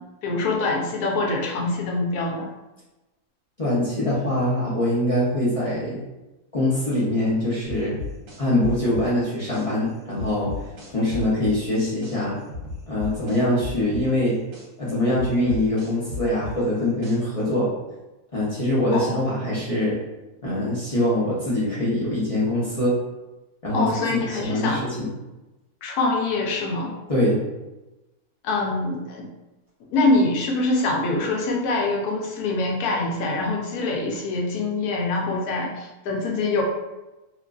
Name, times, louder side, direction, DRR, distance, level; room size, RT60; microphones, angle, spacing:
voice 1, 0.0-2.5 18.9-19.2 23.7-24.8 25.8-26.9 28.4-29.3 29.9-36.6, left 2 dB, 85° left, -1 dB, 1.1 m, -24 dB
voice 2, 3.6-6.0 6.5-8.0 8.4-10.5 10.9-12.4 12.9-14.4 14.8-17.7 18.3-19.9 20.4-22.9 23.6-25.1 27.1-27.4, left 1 dB, 50° left, -8 dB, 0.4 m, -23 dB
sound 1, 7.6-9.7 10.1-12.2 12.5-14.7 15.1-17.4, left 3 dB, 65° right, 1.1 m, -34 dB
2.9 x 2.4 x 2.3 m, 1.0 s
omnidirectional pair, 1.6 m